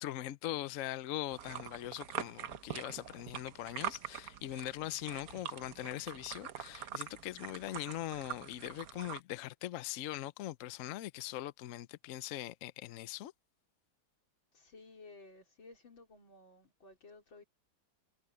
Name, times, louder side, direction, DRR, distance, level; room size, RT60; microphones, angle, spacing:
voice 1, 0.0-13.3, left 14 dB, 70° left, 0.7 m, -41 dB
sound 1, 1.3-9.2, right 9 dB, 55° right, 1.2 m, -44 dB
voice 2, 14.5-17.4, left 3 dB, 85° left, 4.8 m, -56 dB
omnidirectional pair, 2.1 m